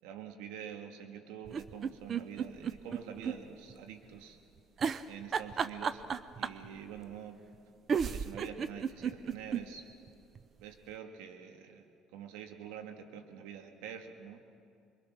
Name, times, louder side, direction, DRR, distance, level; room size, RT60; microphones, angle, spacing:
voice 1, 0.0-4.4 5.1-6.0 6.4-7.4 8.1-9.8 10.6-14.4, right 8 dB, 80° right, 5 dB, 2.0 m, -46 dB
sound 1, 1.5-3.4 3.7-3.8 4.8-6.7 7.5-7.6 7.9-9.6 10.1-10.2 10.4-10.5, right 7 dB, 45° right, 0.8 m, -33 dB
27.0 x 22.5 x 6.4 m, 2.5 s
supercardioid pair, 75°, 0 cm